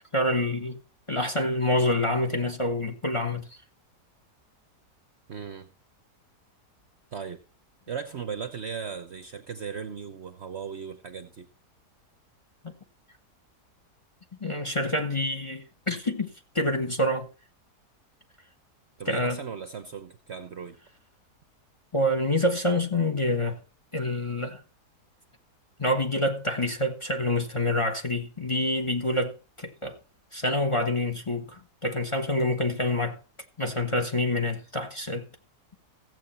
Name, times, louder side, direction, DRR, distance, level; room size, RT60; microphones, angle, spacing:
voice 1, 0.1-0.8 1.1-3.5 12.6-12.7 14.4-16.3 16.5-17.3 19.1-19.4 21.9-23.6 23.9-24.6 25.8-30.0 30.3-33.2 33.6-35.3, left 1 dB, 20° left, 1.2 m, -27 dB
voice 2, 5.3-5.7 7.1-7.4 7.9-11.5 19.0-20.8, right 6 dB, 50° right, 1.0 m, -37 dB
15.0 x 7.9 x 4.2 m
omnidirectional pair, 1.7 m